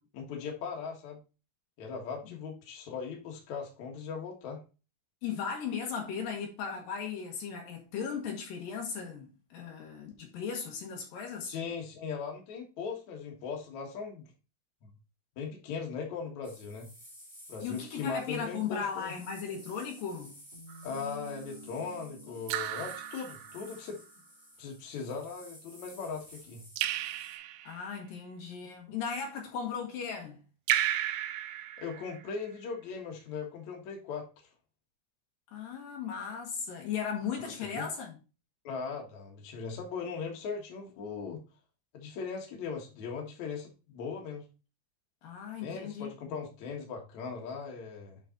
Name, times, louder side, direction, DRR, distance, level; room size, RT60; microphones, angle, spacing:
voice 1, 0.1-1.2 1.8-4.6 11.5-14.3 14.8-14.9 15.3-16.9 17.5-19.1 20.8-24.0 24.6-26.6 31.8-34.2 37.4-37.9 38.6-41.4 41.9-44.4 45.6-48.2, left 5 dB, 90° left, 1.6 m, -39 dB
voice 2, 5.2-11.5 17.6-20.3 27.6-30.4 35.5-38.2 45.2-46.4, left 6 dB, 70° left, 2.1 m, -37 dB
sound 1, 16.4-27.4, equal, ahead, 2.0 m, -54 dB
sound 2, 20.5-24.1 24.6-24.7 25.2-25.3 26.1-26.4, equal, 20° right, 1.6 m, -51 dB
Raindrop / Drip, 20.7-21.2 22.5-23.8 26.8-27.9 30.7-32.4, right 12 dB, 85° right, 3.2 m, -34 dB
9.0 x 4.1 x 3.8 m
omnidirectional pair, 6.0 m